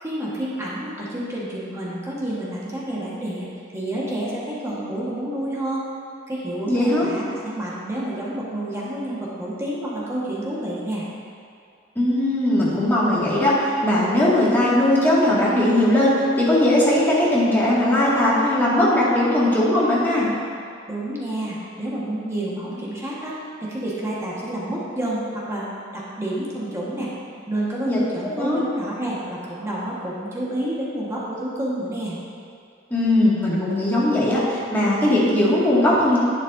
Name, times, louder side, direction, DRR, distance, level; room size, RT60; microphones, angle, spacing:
voice 1, 0.0-3.5 3.7-5.9 6.3-11.0 20.9-27.1 27.5-32.2, right 1 dB, 15° right, -7 dB, 1.5 m, -29 dB
voice 2, 6.7-7.1 12.0-20.3 27.9-28.0 28.4-28.6 32.9-36.2, left 1 dB, 10° left, -8 dB, 2.1 m, -19 dB
11.0 x 8.7 x 2.7 m, 2.4 s
head